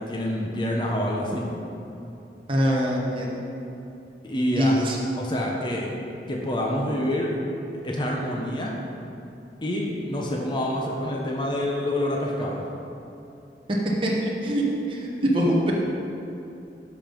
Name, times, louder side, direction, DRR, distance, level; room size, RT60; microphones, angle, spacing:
voice 1, 0.0-1.5 4.2-5.9 6.3-7.4 7.8-8.7 9.6-12.6, left 1 dB, 25° left, -2 dB, 0.9 m, -27 dB
voice 2, 2.5-3.4 4.5-5.0 14.0-15.7, equal, 30° right, -3 dB, 1.0 m, -23 dB
11.0 x 5.5 x 5.3 m, 2.8 s
head